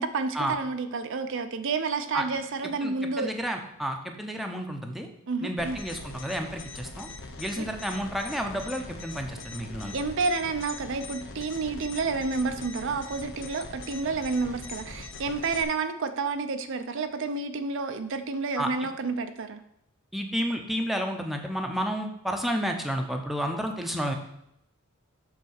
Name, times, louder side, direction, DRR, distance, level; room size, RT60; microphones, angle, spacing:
voice 1, 0.0-3.3 5.3-5.8 7.6-7.7 9.9-19.6, right 4 dB, 60° right, 8 dB, 0.5 m, -30 dB
voice 2, 2.6-5.1 5.4-7.1 7.4-9.9 18.6-18.7 20.1-24.2, equal, ahead, 3 dB, 0.7 m, -31 dB
sound 1, 5.6-15.6, left 3 dB, 60° left, 0.9 m, -42 dB
7.1 x 4.1 x 6.4 m, 0.77 s
head